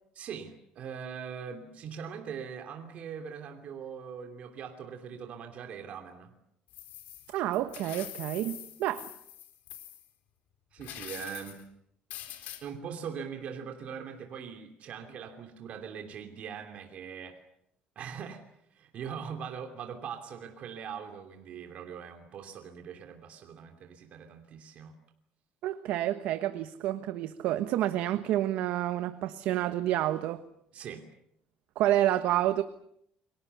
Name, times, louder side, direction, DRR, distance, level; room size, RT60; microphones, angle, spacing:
voice 1, 0.2-6.3 10.7-11.6 12.6-17.4 17.9-18.4 18.7-24.9 30.7-31.1, right 7 dB, 50° right, 3.0 m, -41 dB
sound 1, 6.7-10.1 10.8-11.6 12.1-12.6, left 12 dB, 75° left, 4.4 m, -45 dB
voice 2, 7.3-9.1 25.6-30.4 31.7-32.6, right 13 dB, 75° right, 1.2 m, -29 dB
29.5 x 23.5 x 7.0 m
cardioid pair, 145°, 3 cm